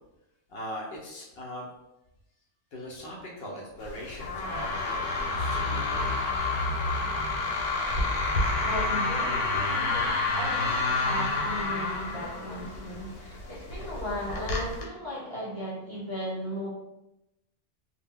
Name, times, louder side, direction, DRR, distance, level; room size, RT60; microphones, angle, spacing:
voice 1, 0.5-1.7 2.7-6.2, equal, 65° left, -2 dB, 0.7 m, -40 dB
sound 1, 3.8-14.8, left 3 dB, 85° left, 1.0 m, -29 dB
voice 2, 8.6-16.7, equal, 35° right, -9 dB, 0.5 m, -36 dB
2.1 x 2.0 x 3.6 m, 0.92 s
omnidirectional pair, 1.3 m